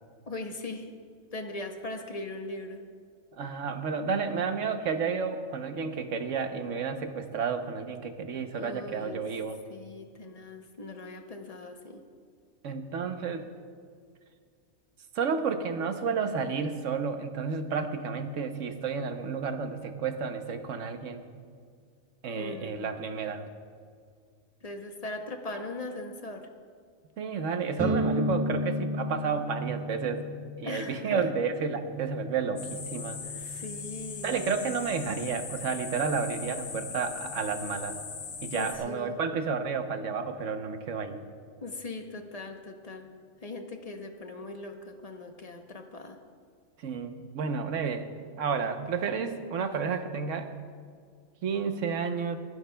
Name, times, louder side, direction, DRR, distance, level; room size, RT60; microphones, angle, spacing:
voice 1, 0.3-0.8 1.3-2.8 8.5-9.2 9.7-12.0 22.4-22.9 24.6-26.5 30.6-31.2 33.5-34.4 38.5-39.2 41.6-43.1 43.4-46.2, left 2 dB, 35° left, 5 dB, 0.8 m, -39 dB
voice 2, 3.4-9.6 12.6-13.5 15.1-21.2 22.2-23.5 27.2-30.3 30.6-33.2 34.2-38.0 38.4-41.2 46.8-48.1 48.4-50.5 51.4-52.4, right 5 dB, 65° right, 7 dB, 1.2 m, -31 dB
sound 1, 27.8-35.4, left 1 dB, 15° right, 0.8 m, -35 dB
sound 2, 32.6-38.8, left 6 dB, 80° left, 1.4 m, -40 dB
29.0 x 11.0 x 2.2 m, 2.1 s
omnidirectional pair, 1.4 m